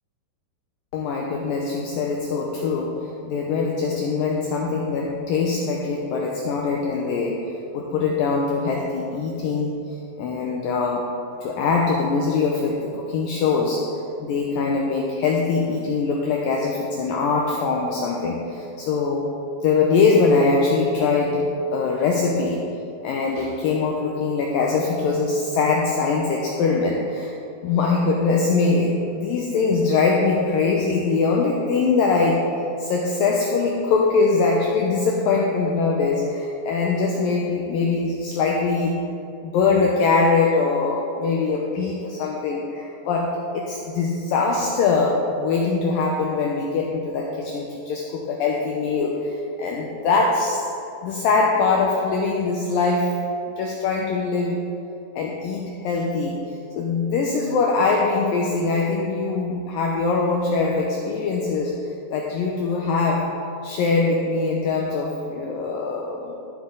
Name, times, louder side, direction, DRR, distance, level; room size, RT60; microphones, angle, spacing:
voice 1, 0.9-9.8 10.2-11.1 11.4-13.9 14.2-19.3 19.6-22.6 23.0-27.4 27.6-32.5 32.8-39.0 39.4-50.7 51.0-53.2 53.6-54.7 55.2-56.4 56.7-63.3 63.6-66.3, left 4 dB, 85° left, -1 dB, 2.0 m, -22 dB
13.5 x 7.1 x 3.8 m, 2.7 s
omnidirectional pair, 4.9 m